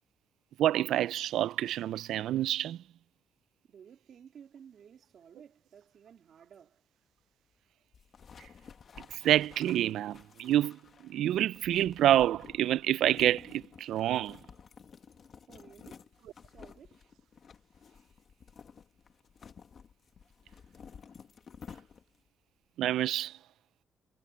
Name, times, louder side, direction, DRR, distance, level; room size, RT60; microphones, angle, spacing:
voice 1, 0.6-2.8 9.1-14.4 22.8-23.3, right 12 dB, 80° right, 0.3 m, -28 dB
voice 2, 3.7-6.8 15.5-16.1 16.4-17.1, right 8 dB, 50° right, 3.4 m, -55 dB
sound 1, 7.9-22.3, left 6 dB, 40° left, 1.6 m, -53 dB
cardioid pair, 155°, 0 cm